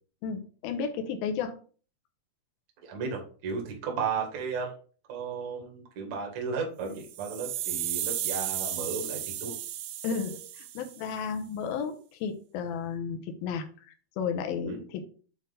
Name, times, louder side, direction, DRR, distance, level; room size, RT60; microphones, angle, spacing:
voice 1, 0.2-1.5 10.0-13.7 14.2-15.0, left 6 dB, 80° left, 6 dB, 2.3 m, -33 dB
voice 2, 2.8-4.7 5.1-9.6 14.6-14.8, right 5 dB, 50° right, 1 dB, 2.4 m, -34 dB
sound 1, 6.9-11.1, right 11 dB, 80° right, 2.4 m, -34 dB
7.9 x 4.3 x 4.0 m, 0.40 s
omnidirectional pair, 5.2 m